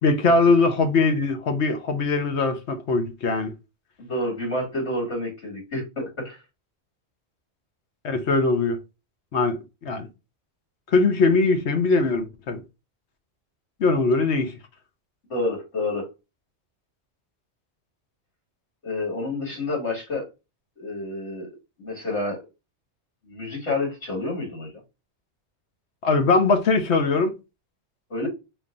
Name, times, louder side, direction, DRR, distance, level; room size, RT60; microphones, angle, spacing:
voice 1, 0.0-3.5 8.0-8.8 9.3-10.1 10.9-12.6 13.8-14.5 26.0-27.3, left 3 dB, 75° left, 1.2 m, -21 dB
voice 2, 4.0-6.4 15.3-16.1 18.8-20.3 20.8-21.5 21.8-22.4 23.3-24.7 28.1-28.3, left 2 dB, 90° left, 2.4 m, -29 dB
5.3 x 3.0 x 2.5 m
omnidirectional pair, 1.2 m